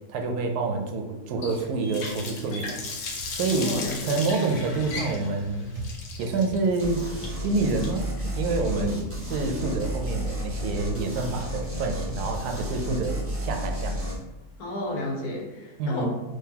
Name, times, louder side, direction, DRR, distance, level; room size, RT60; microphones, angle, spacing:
voice 1, 0.1-3.1 3.3-3.7 4.0-5.7 6.2-7.0 7.4-9.0 9.3-14.0 15.8-16.1, right 3 dB, 85° right, 4 dB, 1.1 m, -27 dB
Water tap faucet, 1.4-10.3, left 3 dB, 65° left, 0.8 m, -37 dB
Typing, 2.5-13.9, right 2 dB, 55° right, 1.1 m, -44 dB
voice 2, 3.5-4.3 8.7-9.0 14.6-16.1, left 1 dB, 80° left, 0 dB, 1.4 m, -32 dB
sound 1, 6.8-14.2, equal, 15° right, 0.5 m, -32 dB
3.8 x 3.0 x 2.8 m, 1.0 s
omnidirectional pair, 1.6 m